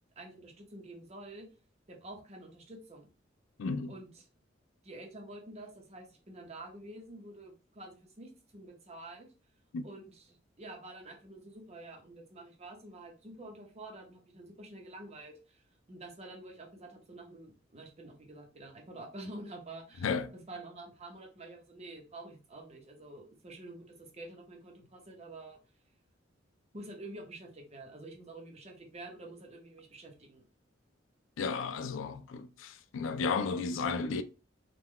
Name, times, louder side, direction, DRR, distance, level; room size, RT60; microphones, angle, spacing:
voice 1, 0.2-1.5 1.9-3.1 3.9-4.3 4.8-9.3 9.8-15.6 15.9-20.1 20.5-25.6 26.7-30.4, right 2 dB, 35° right, 0.8 m, -48 dB
voice 2, 3.6-3.9 9.7-9.8 20.0-20.3 31.4-34.2, left 4 dB, 90° left, 0.4 m, -33 dB
3.7 x 2.3 x 3.0 m
head